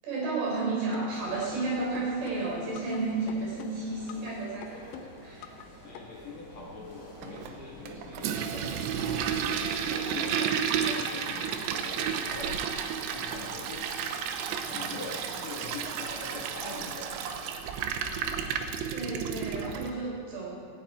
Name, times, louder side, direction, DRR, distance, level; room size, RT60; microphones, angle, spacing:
voice 1, 0.0-4.9 5.2-5.6 18.9-20.5, right 3 dB, 65° right, -3 dB, 6.1 m, -32 dB
sound 1, 0.9-1.7 1.9-3.0 3.3-4.3 4.6-5.7 5.9-6.0, left 8 dB, 75° left, 2.1 m, -44 dB
sound 2, 1.1-18.8, left 1 dB, 20° left, 4.5 m, -49 dB
voice 2, 5.8-9.3 9.9-12.7 13.1-13.9 14.6-17.3, left 3 dB, 50° left, -5 dB, 2.5 m, -43 dB
Toilet flush, 7.2-19.9, right 7 dB, 90° right, 3.2 m, -32 dB
17.5 x 15.0 x 4.4 m, 2.5 s
omnidirectional pair, 5.0 m